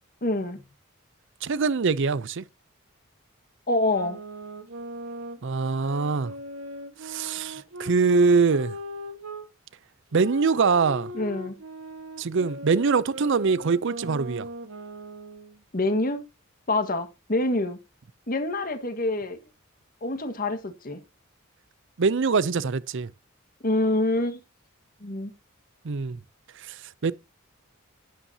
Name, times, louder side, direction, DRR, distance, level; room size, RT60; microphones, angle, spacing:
voice 1, 0.2-0.6 3.7-4.2 11.1-11.6 15.7-16.2 16.7-17.8 18.3-19.4 20.0-21.0 23.6-24.4 25.0-25.3, left 2 dB, 45° left, 1.6 m, -26 dB
voice 2, 1.4-2.4 5.4-6.3 7.0-8.8 10.1-11.1 12.2-14.5 22.0-23.1 25.8-26.2 26.6-27.1, right 4 dB, 60° right, 0.5 m, -23 dB
sound 1, 3.9-9.5 10.1-15.6, equal, 80° right, 1.5 m, -39 dB
11.0 x 9.9 x 2.8 m
head